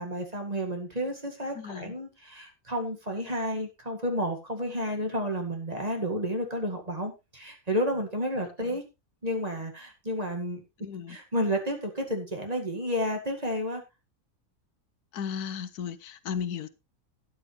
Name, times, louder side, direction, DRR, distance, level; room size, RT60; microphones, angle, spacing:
voice 1, 0.0-8.8 9.2-10.6 11.1-13.8, equal, 25° right, 2.1 m, -31 dB
voice 2, 1.5-1.9 8.6-8.8 10.8-11.2 15.1-16.7, left 7 dB, 90° left, 1.4 m, -35 dB
13.0 x 9.5 x 3.2 m
omnidirectional pair, 1.6 m